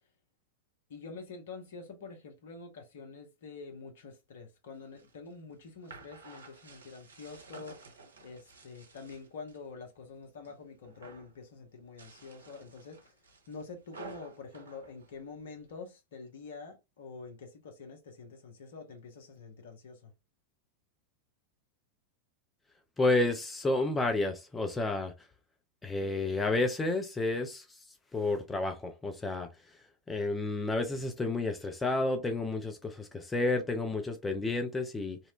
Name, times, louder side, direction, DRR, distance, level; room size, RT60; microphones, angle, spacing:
voice 1, 0.9-13.2 13.5-20.1, left 4 dB, 60° left, 0.7 m, -47 dB
sound 1, 4.8-9.6 10.0-10.6 10.8-11.4 11.8-15.7, right 4 dB, 70° right, 0.5 m, -52 dB
voice 2, 23.0-25.3 25.8-27.8 28.1-29.8 30.1-35.2, left 2 dB, 15° left, 0.4 m, -31 dB
2.8 x 2.1 x 2.3 m
figure-of-eight pair, 90°, 0 cm